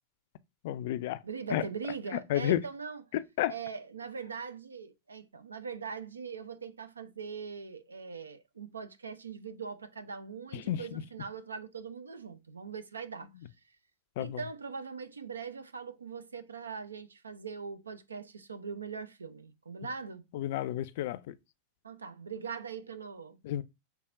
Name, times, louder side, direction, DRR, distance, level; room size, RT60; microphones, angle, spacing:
voice 1, 0.6-1.2 1.5-1.6 2.1-2.6 3.1-3.5 10.5-11.0 14.2-14.4 20.3-21.3 23.4-23.6, left 13 dB, 50° left, 0.4 m, -31 dB
voice 2, 1.2-3.0 3.5-13.3 14.2-20.3 21.8-23.4, right 5 dB, 75° right, 0.5 m, -41 dB
5.7 x 3.4 x 2.5 m
figure-of-eight pair, 90°, 0 cm